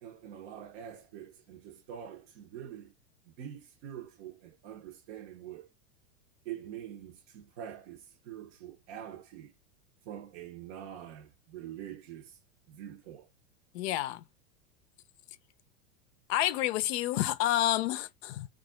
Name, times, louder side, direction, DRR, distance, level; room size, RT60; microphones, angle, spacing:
voice 1, 0.0-2.9 3.4-5.7 6.5-9.5 10.1-12.3 12.7-13.3, right 10 dB, 60° right, 0.7 m, -45 dB
voice 2, 13.7-14.2 16.3-18.5, left 13 dB, 60° left, 0.5 m, -29 dB
2.4 x 2.0 x 3.6 m
hypercardioid pair, 115°, 38 cm